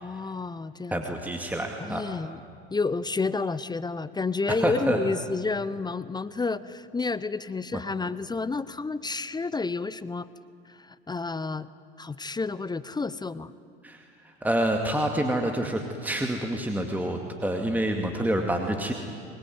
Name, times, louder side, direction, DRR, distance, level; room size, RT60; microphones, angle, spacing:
voice 1, 0.0-1.0 1.8-2.4 2.7-10.3 10.7-11.7 12.0-13.5, left 4 dB, 15° left, 16 dB, 0.7 m, -30 dB
voice 2, 0.9-2.0 4.5-5.0 7.7-7.8 13.8-18.9, right 1 dB, 5° right, 3 dB, 2.2 m, -27 dB
23.5 x 20.5 x 9.5 m, 2.2 s
hypercardioid pair, 80°, 31 cm